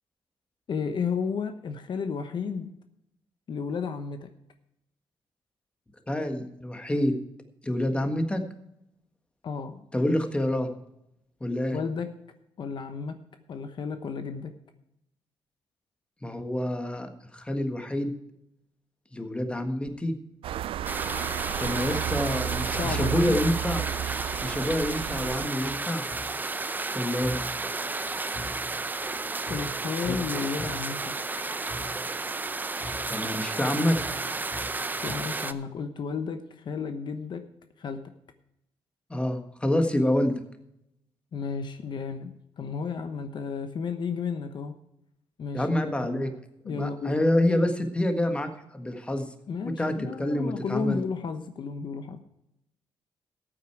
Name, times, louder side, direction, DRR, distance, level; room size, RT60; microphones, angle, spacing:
voice 1, 0.7-2.7 3.5-4.3 9.4-9.8 11.7-12.1 12.6-13.2 13.5-14.5 22.8-23.4 29.5-31.1 35.0-37.4 37.8-38.1 41.3-44.7 45.4-46.4 46.6-47.2 49.5-52.2, left 5 dB, 55° left, 8 dB, 1.0 m, -33 dB
voice 2, 6.1-7.1 7.6-8.4 9.9-10.7 11.4-11.8 16.2-18.1 19.1-20.1 21.6-23.8 24.4-26.1 26.9-27.4 30.1-30.2 33.1-34.0 39.1-40.3 45.5-46.3 46.7-49.3 49.6-51.0, left 1 dB, 10° left, 6 dB, 1.5 m, -27 dB
sound 1, 20.4-25.5, right 11 dB, 70° right, 0.4 m, -32 dB
sound 2, 20.8-35.5, right 3 dB, 20° right, 0.6 m, -32 dB
sound 3, 25.6-35.2, left 1 dB, 75° left, 3.2 m, -44 dB
14.0 x 8.8 x 4.7 m, 0.81 s
cardioid pair, 120°, 10 cm